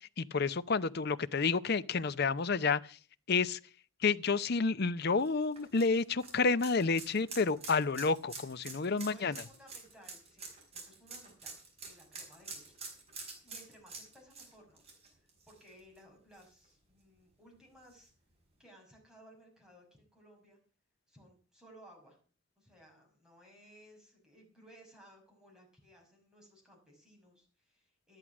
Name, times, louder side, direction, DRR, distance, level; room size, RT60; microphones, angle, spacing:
voice 1, 0.2-3.0 3.3-3.6 4.0-9.3, left 4 dB, 50° left, 0.6 m, -30 dB
sound 1, 5.2-16.0 16.3-16.4 17.9-18.0, right 4 dB, 30° right, 5.2 m, -47 dB
voice 2, 8.8-12.7 13.0-14.8 15.1-18.1 18.6-20.6 21.1-22.2 22.6-28.2, equal, 5° right, 5.9 m, -59 dB
12.5 x 10.5 x 6.1 m
head